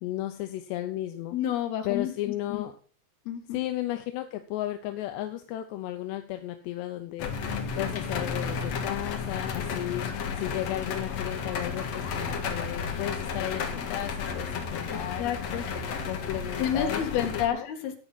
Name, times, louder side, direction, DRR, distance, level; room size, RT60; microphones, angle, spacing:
voice 1, 0.0-1.4 1.8-2.8 3.5-7.3 7.8-10.1 10.4-17.0 17.5-17.7, left 14 dB, 85° left, 7 dB, 3.1 m, -34 dB
voice 2, 1.3-2.6 3.3-3.6 14.9-15.6 16.6-18.0, left 10 dB, 70° left, 4 dB, 4.0 m, -30 dB
sound 1, 7.2-17.5, left 5 dB, 50° left, 2.3 m, -32 dB
15.0 x 10.0 x 4.2 m, 0.41 s
omnidirectional pair, 4.8 m